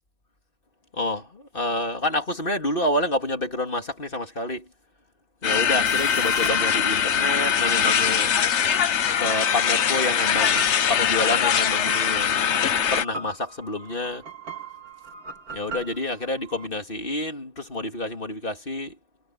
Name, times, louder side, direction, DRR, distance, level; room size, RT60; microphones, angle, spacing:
voice 1, 0.9-4.7 5.4-8.3 9.2-12.6 12.9-14.2 15.5-19.0, left 2 dB, 35° left, 3.2 m, -28 dB
sound 1, 5.4-13.0, left 8 dB, 55° left, 1.1 m, -22 dB
sound 2, 5.9-16.7, right 3 dB, 75° right, 3.3 m, -39 dB
omnidirectional pair, 1.6 m